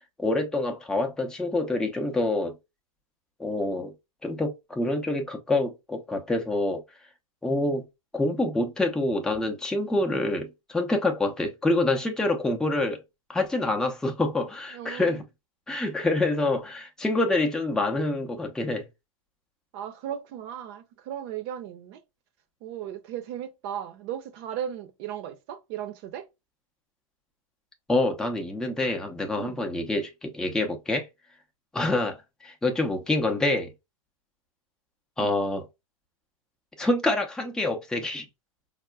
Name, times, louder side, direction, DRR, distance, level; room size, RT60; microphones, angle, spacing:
voice 1, 0.2-2.6 3.4-3.9 4.2-6.8 7.4-7.9 8.1-13.0 13.3-15.2 15.7-18.9 27.9-31.1 31.7-33.7 35.2-35.7 36.8-38.3, left 2 dB, 5° left, 0.5 m, -26 dB
voice 2, 14.7-15.2 19.7-22.0 22.6-26.3 29.3-29.6 35.2-35.3, right 10 dB, 45° right, 0.7 m, -36 dB
4.7 x 2.1 x 2.2 m
hypercardioid pair, 115°, 18 cm